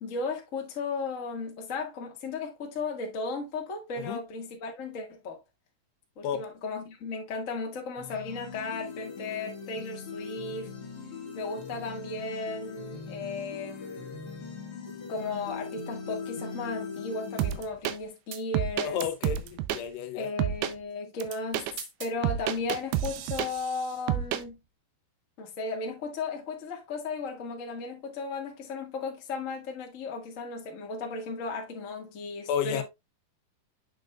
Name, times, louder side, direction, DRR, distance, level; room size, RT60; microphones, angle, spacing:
voice 1, 0.0-5.4 6.2-10.7 11.3-14.2 15.1-19.0 20.1-21.6 22.0-24.6 25.4-32.8, left 3 dB, 60° left, 0.8 m, -35 dB
sound 1, 8.0-17.6, left 5 dB, 45° left, 1.4 m, -40 dB
sound 2, 17.4-18.0 18.3-19.8 20.4-20.7 21.2-23.8 24.1-24.4, right 11 dB, 85° right, 2.6 m, -29 dB
voice 2, 18.8-20.3 32.5-32.8, left 9 dB, 85° left, 3.0 m, -31 dB
8.4 x 6.3 x 2.4 m
omnidirectional pair, 4.7 m